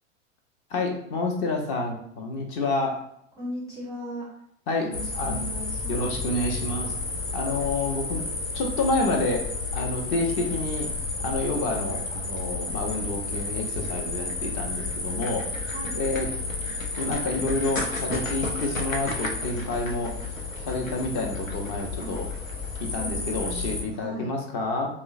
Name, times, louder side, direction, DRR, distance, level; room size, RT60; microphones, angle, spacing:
voice 1, 0.7-3.0 4.7-5.4 5.9-6.9 7.3-8.2 8.5-9.5 9.7-10.9 11.2-15.5 15.9-16.3 16.9-20.1 20.6-22.3 22.8-24.9, left 2 dB, 30° left, 2 dB, 0.6 m, -29 dB
voice 2, 3.4-4.3 4.8-6.0 15.7-16.0 22.0-22.1 22.9-24.3, equal, 10° right, -6 dB, 0.4 m, -37 dB
sound 1, 4.9-23.8, left 3 dB, 80° left, 0.7 m, -31 dB
4.5 x 2.0 x 2.4 m, 0.70 s
figure-of-eight pair, 95°, 39 cm